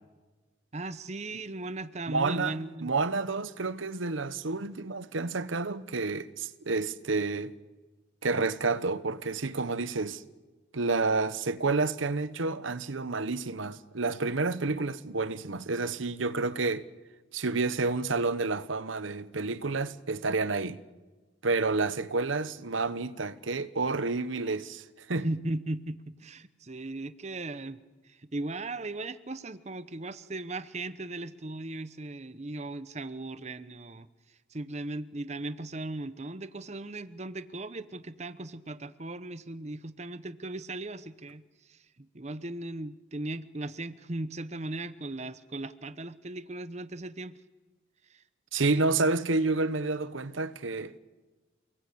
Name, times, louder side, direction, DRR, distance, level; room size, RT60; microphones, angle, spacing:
voice 1, 0.7-2.9 25.2-27.8 28.0-34.1 34.5-41.4 41.7-47.4 48.1-48.2, right 2 dB, 35° right, 0.9 m, -37 dB
voice 2, 2.1-2.5 2.8-7.5 8.2-10.2 10.7-16.8 17.3-20.8 21.4-25.3 48.5-51.0, right 3 dB, 85° right, 1.1 m, -29 dB
29.5 x 20.5 x 8.6 m
head